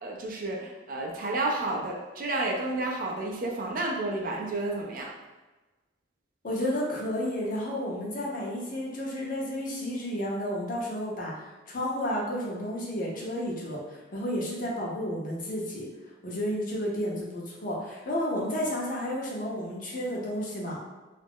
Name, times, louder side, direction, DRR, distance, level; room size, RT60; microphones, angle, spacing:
voice 1, 0.0-5.2, right 2 dB, 50° right, 0 dB, 0.4 m, -31 dB
voice 2, 6.4-15.9 16.2-20.8, equal, 45° left, -3 dB, 0.6 m, -32 dB
2.4 x 2.0 x 3.5 m, 1.2 s
head